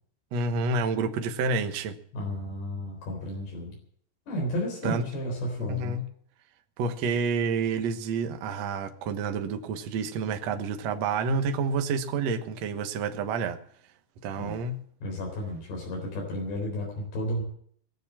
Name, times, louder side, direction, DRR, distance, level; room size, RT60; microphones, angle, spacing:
voice 1, 0.3-1.9 4.8-5.0 5.7-6.0 6.8-13.6 14.2-14.8, right 4 dB, 65° right, 7 dB, 1.7 m, -29 dB
voice 2, 2.1-3.8 4.3-6.0 14.4-14.5 15.0-17.4, equal, 75° left, -1 dB, 6.0 m, -32 dB
22.0 x 7.3 x 7.4 m, 0.62 s
omnidirectional pair, 4.8 m